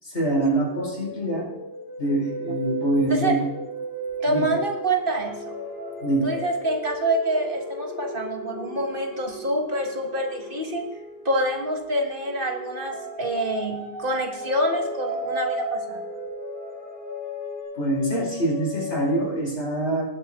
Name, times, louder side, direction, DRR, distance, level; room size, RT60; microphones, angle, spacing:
voice 1, 0.0-1.5 2.0-3.4 4.3-4.5 6.0-6.3 17.7-20.0, right 1 dB, 80° left, -3 dB, 5.0 m, -24 dB
sound 1, 0.5-11.6 12.2-19.3, right 1 dB, 20° right, 2.4 m, -35 dB
sound 2, 3.3-17.6, left 2 dB, 60° left, 2.3 m, -43 dB
voice 2, 4.2-5.4 6.2-10.8 11.3-16.0, right 1 dB, 50° right, 3 dB, 1.7 m, -26 dB
18.5 x 7.7 x 3.6 m, 0.88 s
omnidirectional pair, 1.1 m